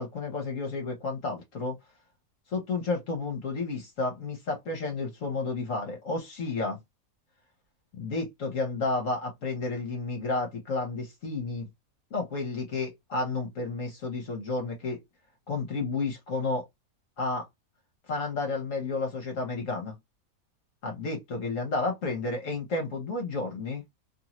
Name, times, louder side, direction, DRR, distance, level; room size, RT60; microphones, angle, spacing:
voice 1, 0.0-1.7 2.5-6.8 7.9-11.7 12.1-15.0 15.5-16.7 17.2-17.5 18.1-19.9 20.8-23.8, left 3 dB, 65° left, 1.3 m, -31 dB
2.7 x 2.6 x 3.0 m
omnidirectional pair, 1.5 m